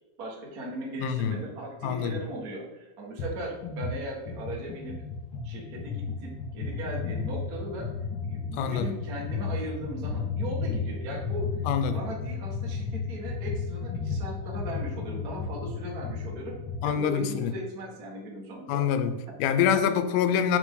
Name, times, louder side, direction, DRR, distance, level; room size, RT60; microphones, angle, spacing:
voice 1, 0.2-5.0 5.4-7.9 8.2-16.5 16.8-18.8 19.3-19.4, right 1 dB, 50° right, 1.0 m, -38 dB
voice 2, 1.0-1.4 1.8-2.2 8.5-8.9 11.6-12.0 16.8-17.5 18.7-20.6, left 8 dB, 85° left, 2.5 m, -26 dB
sound 1, 3.2-3.3 3.6-16.9, left 5 dB, 60° left, 2.7 m, -33 dB
6.0 x 5.6 x 3.8 m
omnidirectional pair, 4.3 m